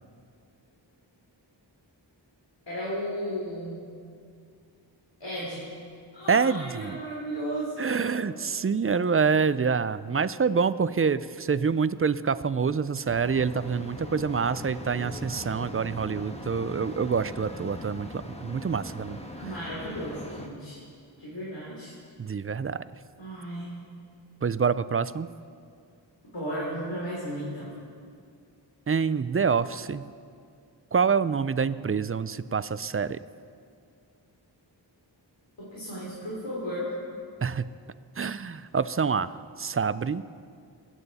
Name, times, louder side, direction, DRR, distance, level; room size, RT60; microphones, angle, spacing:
voice 1, 2.7-3.9 5.2-5.7 6.1-8.3 19.4-20.8 21.2-21.9 23.2-23.7 26.3-27.7 35.6-36.9, equal, 75° left, -7 dB, 3.3 m, -34 dB
voice 2, 6.3-7.0 7.8-18.1 18.4-19.2 22.2-22.8 24.4-25.3 28.9-30.1 30.9-33.2 37.4-37.6 38.2-40.2, right 5 dB, 35° right, 16 dB, 0.4 m, -26 dB
sound 1, 13.0-20.5, equal, 15° left, 1.2 m, -40 dB
23.0 x 9.1 x 4.1 m, 2.3 s
wide cardioid pair, 55°, 44 cm